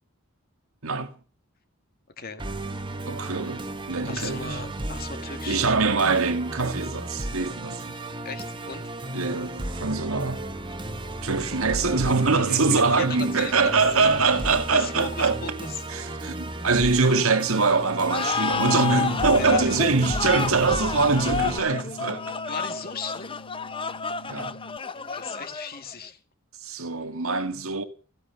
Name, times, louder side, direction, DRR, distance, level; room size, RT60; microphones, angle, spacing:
voice 1, 0.8-1.1 3.1-4.6 5.5-8.0 9.1-10.5 11.2-15.4 15.9-22.3 24.3-24.6 26.6-27.8, right 4 dB, 75° right, 1.8 m, -23 dB
voice 2, 2.2-2.5 4.0-5.7 8.2-8.8 12.2-14.1 14.7-15.8 19.3-19.6 22.5-23.4 24.9-26.2 26.7-26.8, left 4 dB, 45° left, 2.2 m, -37 dB
Musical instrument, 2.4-21.6, right 1 dB, 25° right, 1.6 m, -34 dB
sound 1, 18.1-25.9, left 5 dB, 25° left, 0.8 m, -30 dB
Bass guitar, 18.5-24.8, left 3 dB, 75° left, 0.7 m, -39 dB
15.5 x 10.0 x 7.0 m
head